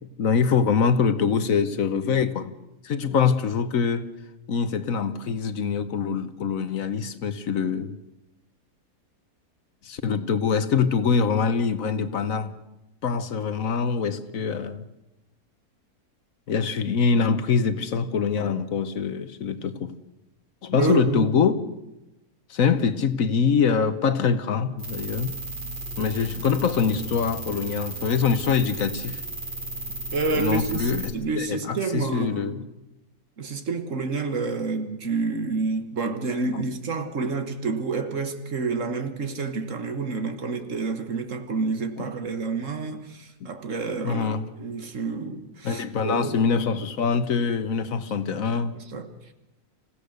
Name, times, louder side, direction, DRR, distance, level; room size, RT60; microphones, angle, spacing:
voice 1, 0.2-2.5 2.8-4.1 4.5-7.9 9.8-12.6 13.0-14.9 16.5-19.9 20.6-21.6 22.5-25.3 26.0-29.2 30.3-32.6 36.5-36.7 42.0-42.1 43.4-43.5 44.0-44.5 45.6-48.7, left 6 dB, 65° left, 1.3 m, -24 dB
voice 2, 20.7-21.4 30.1-32.6 33.4-46.4 48.9-49.1, right 4 dB, 55° right, 1.7 m, -29 dB
sound 1, 24.8-31.1, right 2 dB, 30° right, 2.6 m, -34 dB
26.5 x 16.0 x 6.6 m
omnidirectional pair, 1.6 m